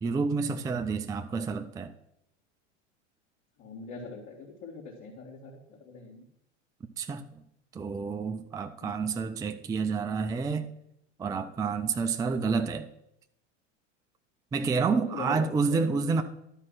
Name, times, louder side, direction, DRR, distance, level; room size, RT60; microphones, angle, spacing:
voice 1, 0.0-1.9 7.0-7.3 7.7-10.7 11.2-12.9 14.5-16.2, right 5 dB, 10° right, 0.4 m, -29 dB
voice 2, 3.6-6.3 8.8-8.9 15.0-15.9, left 4 dB, 50° left, 2.9 m, -42 dB
11.5 x 4.4 x 5.8 m
hypercardioid pair, 85°, 38 cm